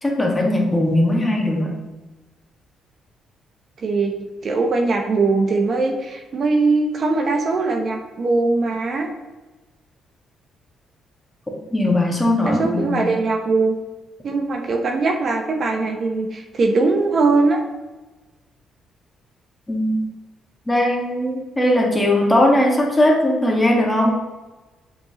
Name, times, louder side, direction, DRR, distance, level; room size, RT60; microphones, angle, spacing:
voice 1, 0.0-1.7 11.7-13.1 19.7-20.0 20.7-24.1, left 1 dB, 15° left, -1 dB, 1.7 m, -19 dB
voice 2, 3.8-4.1 4.4-9.1 12.5-13.8 14.2-17.6, right 3 dB, 50° right, 3 dB, 1.0 m, -20 dB
7.5 x 5.2 x 3.1 m, 1.2 s
cardioid pair, 90°, 0 cm